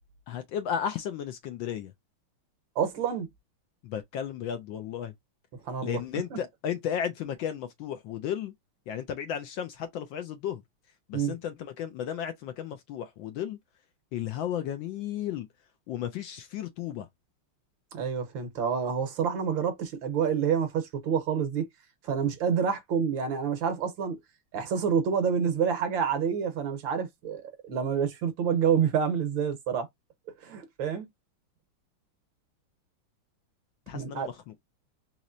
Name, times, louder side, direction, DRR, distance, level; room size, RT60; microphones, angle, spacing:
voice 1, 0.3-1.9 3.8-5.1 5.8-8.5 8.9-10.6 11.1-13.6 14.1-15.5 15.9-17.1 33.9-34.3, left 9 dB, 75° left, 1.2 m, -34 dB
voice 2, 2.7-3.3 5.6-6.0 6.3-6.4 11.1-11.3 17.9-21.7 22.0-24.2 24.5-29.9 30.4-31.0 33.9-34.3, right 7 dB, 65° right, 1.5 m, -28 dB
4.2 x 3.0 x 2.4 m
omnidirectional pair, 2.4 m